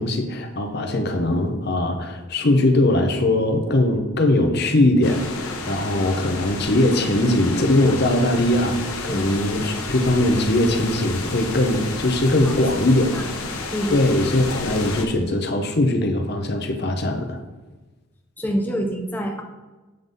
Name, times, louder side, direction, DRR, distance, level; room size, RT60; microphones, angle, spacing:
voice 1, 0.0-13.1 13.9-17.4, left 1 dB, 50° left, 5 dB, 0.8 m, -20 dB
sound 1, 5.0-15.1, left 3 dB, 90° left, 1.0 m, -31 dB
voice 2, 13.7-14.0 18.4-19.4, equal, 10° left, 2 dB, 0.5 m, -26 dB
7.9 x 3.9 x 5.2 m, 1.2 s
head